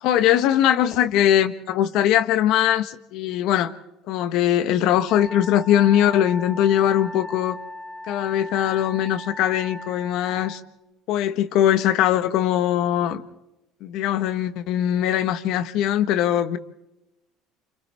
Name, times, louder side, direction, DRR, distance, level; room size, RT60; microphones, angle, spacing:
voice 1, 0.0-3.7 4.1-7.6 8.1-10.6 11.1-13.2 13.8-16.6, left 11 dB, 65° left, 1.4 m, -21 dB
Wind instrument woodwind instrument, 5.1-10.6, equal, ahead, 3.8 m, -38 dB
29.0 x 27.5 x 3.5 m
cardioid pair, 135°, 0 cm